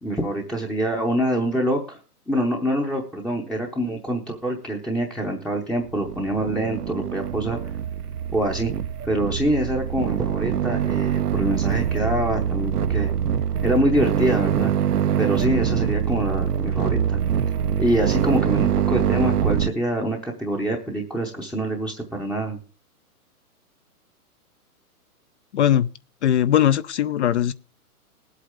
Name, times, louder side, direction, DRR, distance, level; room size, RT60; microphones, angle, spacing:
voice 1, 0.0-2.0 2.3-7.6 8.3-8.7 9.0-13.1 13.6-14.7 15.2-17.2 17.8-22.6, equal, ahead, 0.7 m, -25 dB
sound 1, 5.9-19.7, right 9 dB, 90° right, 0.8 m, -24 dB
voice 2, 25.5-25.9 26.2-27.5, left 10 dB, 50° left, 0.6 m, -19 dB
19.0 x 8.3 x 3.6 m
hypercardioid pair, 140°, 46 cm